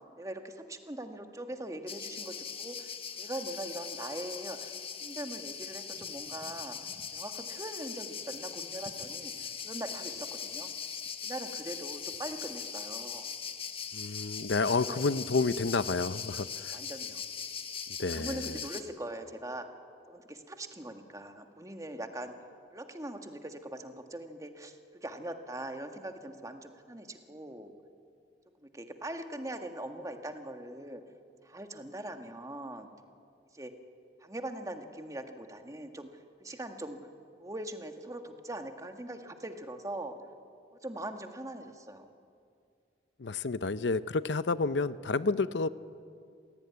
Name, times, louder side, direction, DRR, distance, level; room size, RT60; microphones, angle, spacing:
voice 1, 0.2-4.7 5.0-6.8 7.1-10.7 11.2-13.3 14.5-15.0 16.7-17.2 18.1-19.6 20.1-22.3 22.7-27.7 28.6-31.0 31.4-32.9 33.5-33.7 34.2-37.0 37.4-40.1 40.7-42.1, right 1 dB, 20° right, 5 dB, 1.7 m, -41 dB
sound 1, 1.9-18.8, left 7 dB, 30° left, 1.3 m, -40 dB
voice 2, 13.9-16.8 18.0-18.6 43.2-45.7, left 3 dB, 85° left, 14 dB, 0.7 m, -30 dB
27.0 x 17.5 x 9.6 m, 2.3 s
head